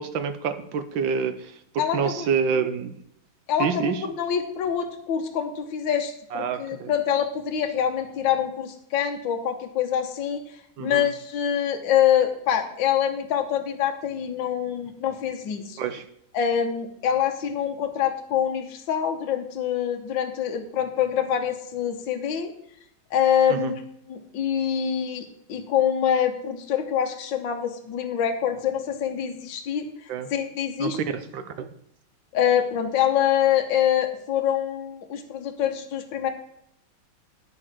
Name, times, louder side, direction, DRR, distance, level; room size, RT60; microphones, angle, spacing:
voice 1, 0.0-2.9 3.6-4.0 6.3-6.9 10.8-11.1 15.8-16.0 23.5-23.7 30.1-30.3 30.8-31.7, right 6 dB, 70° right, 10 dB, 1.6 m, -28 dB
voice 2, 1.8-2.3 3.5-10.4 10.8-15.8 16.3-22.5 23.1-23.8 24.1-29.9 30.3-31.0 32.3-36.3, left 9 dB, 65° left, 4 dB, 1.7 m, -25 dB
9.9 x 6.9 x 6.0 m, 0.73 s
omnidirectional pair, 2.2 m